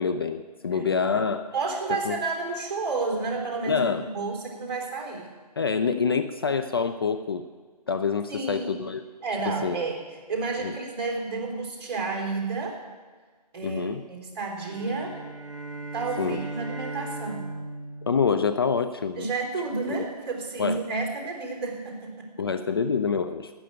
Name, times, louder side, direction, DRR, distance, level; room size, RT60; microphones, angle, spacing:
voice 1, 0.0-1.5 1.9-2.2 3.7-4.1 5.6-7.4 7.9-9.0 9.5-9.8 10.6-10.7 13.6-14.0 16.2-16.4 18.0-19.3 19.9-20.0 20.6-20.8 22.4-23.5, left 5 dB, 35° left, 10 dB, 0.5 m, -26 dB
voice 2, 1.5-5.3 8.3-8.8 9.2-10.0 10.3-12.8 13.5-15.2 15.9-17.6 19.2-22.3, right 3 dB, 35° right, -1 dB, 3.7 m, -31 dB
sound 1, 14.7-19.1, right 3 dB, 5° right, 0.9 m, -38 dB
12.0 x 9.1 x 8.8 m, 1.4 s
hypercardioid pair, 165°, 21 cm